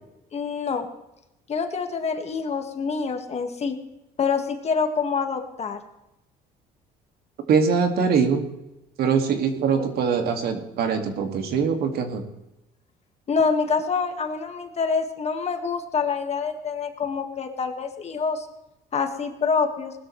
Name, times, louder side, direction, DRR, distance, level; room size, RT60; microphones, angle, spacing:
voice 1, 0.3-0.9 1.5-3.8 4.2-5.8 9.7-9.9 13.3-18.5 18.9-19.9, left 5 dB, 40° left, 6 dB, 1.7 m, -26 dB
voice 2, 7.5-8.4 9.0-12.2, right 6 dB, 70° right, 5 dB, 2.1 m, -22 dB
19.5 x 13.0 x 3.2 m, 0.90 s
cardioid pair, 110°, 17 cm